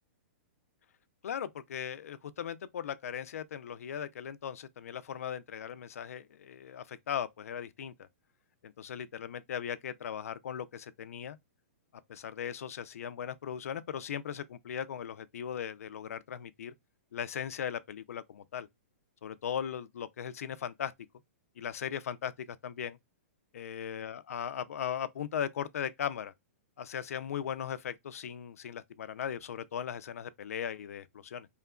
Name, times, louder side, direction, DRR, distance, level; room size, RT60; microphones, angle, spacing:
voice 1, 1.2-8.1 8.6-11.4 12.1-16.7 17.1-18.7 19.2-20.9 21.6-23.0 23.5-26.3 26.8-31.5, left 8 dB, 90° left, 0.4 m, -38 dB
2.8 x 2.3 x 2.2 m
hypercardioid pair, 180°, 8 cm